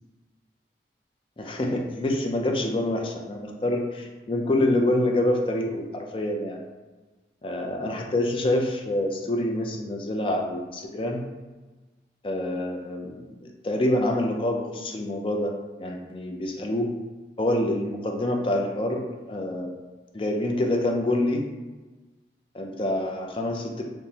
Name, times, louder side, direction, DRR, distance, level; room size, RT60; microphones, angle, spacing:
voice 1, 1.4-6.6 7.4-11.3 12.2-15.5 15.8-16.9 17.4-19.7 20.1-21.5 22.5-23.8, left 1 dB, 30° left, 1 dB, 0.4 m, -26 dB
5.2 x 2.0 x 2.8 m, 1.2 s
head